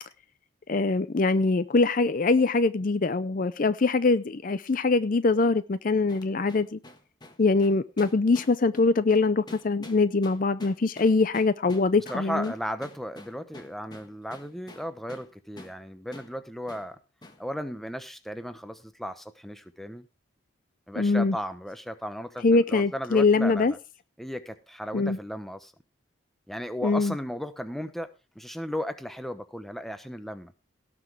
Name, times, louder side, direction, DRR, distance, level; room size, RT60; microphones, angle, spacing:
voice 1, 0.7-6.8 7.4-12.5 21.0-21.4 22.4-23.7 24.9-25.2 26.8-27.1, left 3 dB, 40° left, 15 dB, 0.5 m, -23 dB
sound 1, 6.1-15.3 15.6-15.8 16.1-16.3 16.7-16.9 17.2-17.4, left 1 dB, 20° left, 1.5 m, -48 dB
voice 2, 12.1-17.0 17.4-20.1 20.9-23.8 24.2-25.7 26.5-30.5, equal, ahead, 10 dB, 0.9 m, -35 dB
17.5 x 6.1 x 4.7 m, 0.30 s
head